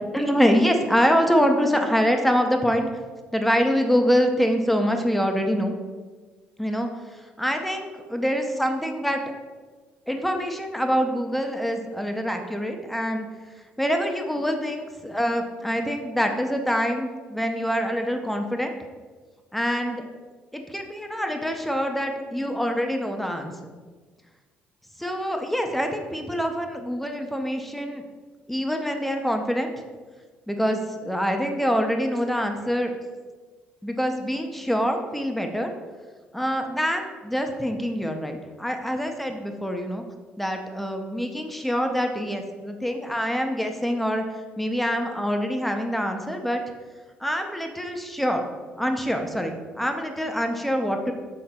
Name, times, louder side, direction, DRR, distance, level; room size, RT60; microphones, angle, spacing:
voice 1, 0.1-2.9 3.3-5.7 6.6-6.9 7.4-9.2 10.1-13.3 13.8-18.7 19.5-20.0 20.5-23.5 25.0-28.0 28.5-29.7 30.5-32.9 33.8-35.7 36.3-40.0 40.4-44.2 44.6-46.6 47.2-48.4 48.8-51.1, equal, 5° left, 4 dB, 0.5 m, -25 dB
5.6 x 3.9 x 2.2 m, 1.4 s
supercardioid pair, 85°, 4 cm